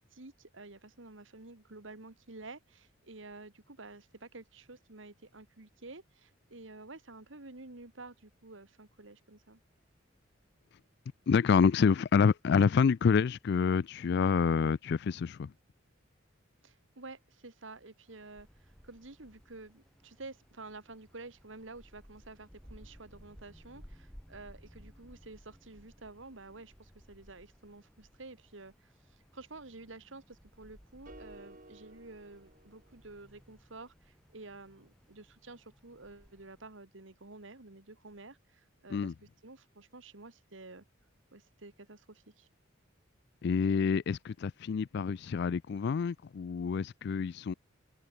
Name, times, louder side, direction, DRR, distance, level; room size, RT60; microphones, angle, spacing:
voice 1, 0.0-9.6 16.6-39.1 39.4-40.8 41.3-42.5, right 3 dB, 70° right, 1.9 m, -50 dB
voice 2, 11.3-15.5 38.9-39.1 43.4-47.5, left 6 dB, 55° left, 0.3 m, -27 dB
Wind, 18.1-36.7, equal, 5° left, 4.3 m, -58 dB
sound 1, 31.1-33.4, right 2 dB, 45° right, 5.1 m, -55 dB
head